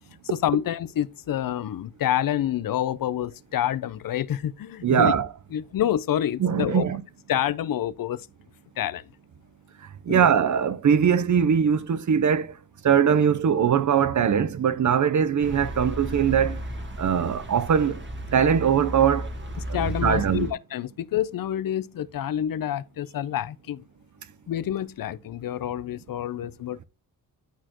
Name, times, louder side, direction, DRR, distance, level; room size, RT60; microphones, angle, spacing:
voice 1, 0.3-5.1 5.5-6.9 7.3-8.2 8.8-9.0 10.1-10.3 19.7-23.8 24.5-26.8, left 11 dB, 65° left, 0.6 m, -28 dB
voice 2, 4.8-5.3 6.4-7.0 10.0-12.6 12.8-16.6 17.0-18.0 18.3-19.3 19.7-20.5, right 8 dB, 55° right, 0.8 m, -21 dB
sound 1, 15.4-20.5, equal, 30° right, 1.8 m, -34 dB
11.5 x 4.3 x 2.9 m
cardioid pair, 65°, 36 cm